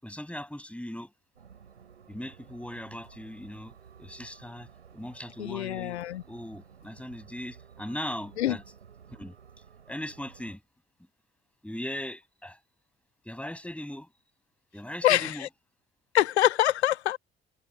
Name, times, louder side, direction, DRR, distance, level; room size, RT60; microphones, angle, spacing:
voice 1, 0.0-1.1 2.1-3.7 4.0-6.0 6.3-8.6 9.1-9.3 9.9-10.6 11.6-12.6 13.2-14.1 14.7-15.5, left 1 dB, 5° left, 7.1 m, -39 dB
sound 1, 1.4-10.6, right 7 dB, 85° right, 7.2 m, -53 dB
voice 2, 5.4-6.2 8.4-8.6 15.0-15.3 16.1-17.2, left 13 dB, 80° left, 0.7 m, -24 dB
figure-of-eight pair, 55°, 33 cm